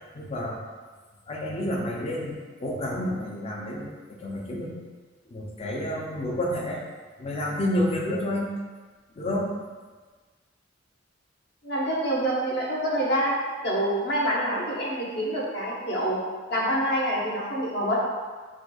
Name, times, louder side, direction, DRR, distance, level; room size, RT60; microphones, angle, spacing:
voice 1, 0.1-0.6 1.3-4.8 5.3-6.8 7.2-8.5 9.2-9.5, left 1 dB, 30° left, -2 dB, 0.5 m, -29 dB
voice 2, 11.6-13.4 13.6-16.2 16.5-18.0, right 1 dB, 60° left, -6 dB, 0.9 m, -26 dB
4.3 x 2.2 x 2.3 m, 1.4 s
head